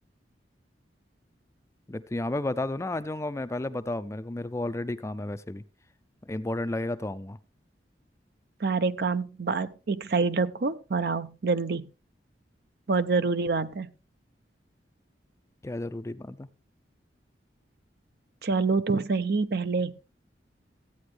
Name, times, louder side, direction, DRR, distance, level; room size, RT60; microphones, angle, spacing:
voice 1, 1.9-5.6 6.3-7.4 15.6-16.5, left 2 dB, 15° left, 0.4 m, -32 dB
voice 2, 8.6-11.9 12.9-13.9 18.4-19.9, right 4 dB, 60° right, 0.6 m, -26 dB
14.5 x 8.7 x 3.3 m
head